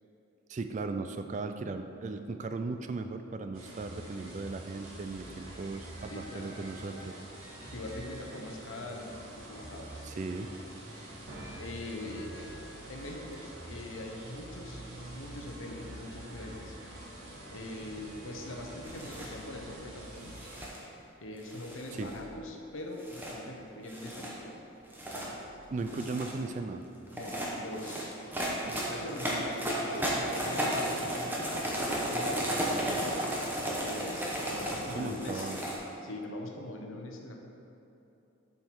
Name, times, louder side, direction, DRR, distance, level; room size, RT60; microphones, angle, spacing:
voice 1, 0.5-7.2 10.1-10.5 21.9-22.1 25.7-26.8 28.6-28.8 34.9-35.6, right 3 dB, 35° right, 8 dB, 0.3 m, -37 dB
sound 1, 3.5-20.7, right 1 dB, 85° right, 1.8 m, -46 dB
voice 2, 6.1-6.5 7.7-9.2 9.5-10.0 11.6-12.4 12.9-16.8 17.5-20.3 21.2-24.5 25.1-25.3 25.9-26.0 27.1-28.2 28.9-32.5 33.7-35.5 36.0-37.3, left 1 dB, 75° left, 1 dB, 0.9 m, -42 dB
sound 2, 18.9-19.4 20.2-20.8 21.5-22.3 23.0-23.3 23.9-24.3 24.8-25.3 25.8-26.4 27.1-35.8, right 1 dB, 10° right, 0.9 m, -34 dB
7.6 x 5.6 x 4.6 m, 2.9 s
head